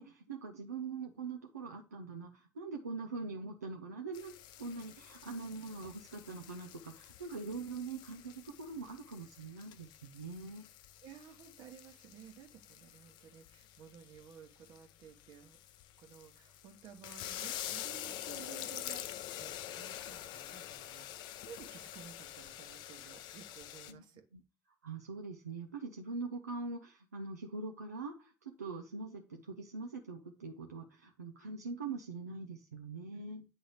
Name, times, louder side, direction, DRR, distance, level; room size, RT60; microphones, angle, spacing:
voice 1, 0.0-10.7 23.9-24.0 24.3-24.4 24.8-33.5, right 4 dB, 85° right, 2 dB, 0.4 m, -43 dB
sound 1, 4.1-23.9, left 12 dB, 65° left, 0.4 m, -47 dB
voice 2, 11.0-15.6 16.0-24.2, right 8 dB, 60° right, 6 dB, 1.0 m, -55 dB
9.6 x 3.7 x 3.1 m, 0.31 s
figure-of-eight pair, 45°, 8 cm